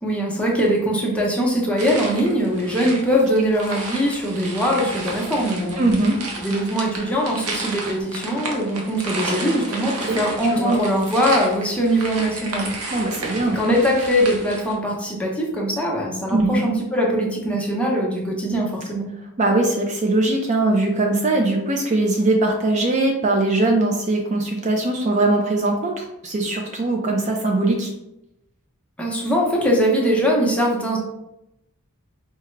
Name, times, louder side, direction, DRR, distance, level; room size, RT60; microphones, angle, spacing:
voice 1, 0.0-5.8 6.4-12.7 13.4-19.1 29.0-31.0, equal, 5° left, -3 dB, 0.7 m, -21 dB
sound 1, 1.8-14.7, right 2 dB, 90° right, 0.8 m, -32 dB
voice 2, 5.8-6.2 10.1-10.2 10.5-10.8 12.9-13.6 16.3-16.6 19.4-27.9, right 2 dB, 35° right, 1 dB, 0.4 m, -21 dB
4.7 x 2.2 x 3.1 m, 0.86 s
head